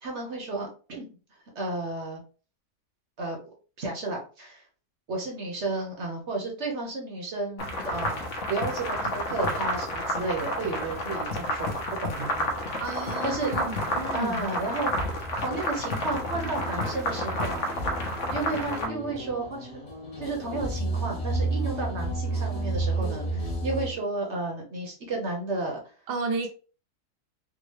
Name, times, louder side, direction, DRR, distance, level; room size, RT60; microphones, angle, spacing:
voice 1, 0.0-1.1 1.5-2.2 3.2-3.4 3.8-4.7 5.1-11.7 12.0-12.8 13.2-13.5 13.8-14.9 15.4-17.7 18.3-19.7 20.2-25.9, right 2 dB, 50° right, 1 dB, 1.0 m, -32 dB
sound 1, 7.6-18.9, left 1 dB, 55° left, 1.0 m, -30 dB
voice 2, 12.8-14.5 26.1-26.5, right 4 dB, 75° right, 3 dB, 1.2 m, -32 dB
sound 2, 14.9-23.9, right 2 dB, 35° left, 0.6 m, -32 dB
3.7 x 2.4 x 3.1 m, 0.36 s
omnidirectional pair, 1.8 m